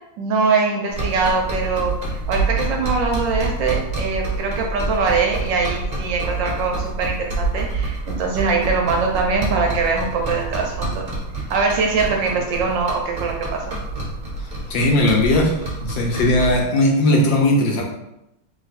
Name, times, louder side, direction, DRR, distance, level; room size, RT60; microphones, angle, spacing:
voice 1, 0.2-11.1 11.5-13.8, right 4 dB, 70° right, 1 dB, 1.2 m, -22 dB
sound 1, 0.9-16.7, right 2 dB, 35° right, 0.7 m, -27 dB
voice 2, 14.7-15.5 15.8-17.8, left 1 dB, 70° left, 0 dB, 1.3 m, -17 dB
3.3 x 2.9 x 4.0 m, 0.86 s
omnidirectional pair, 2.3 m